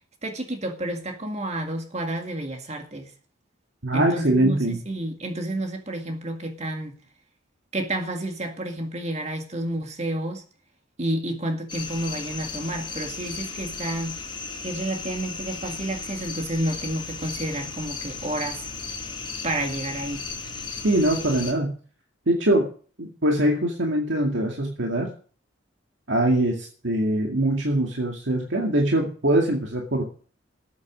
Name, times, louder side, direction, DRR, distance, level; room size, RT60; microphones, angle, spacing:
voice 1, 0.2-3.1 3.9-7.0 7.7-10.4 11.0-14.2 14.6-18.7 19.4-20.3, right 1 dB, 35° right, 2.0 m, -30 dB
voice 2, 3.8-4.8 20.8-21.8 22.3-22.7 23.0-25.1 26.1-30.0, right 1 dB, 70° right, 2.2 m, -22 dB
sound 1, 11.7-21.5, left 5 dB, 25° left, 4.8 m, -35 dB
14.0 x 8.4 x 6.3 m
head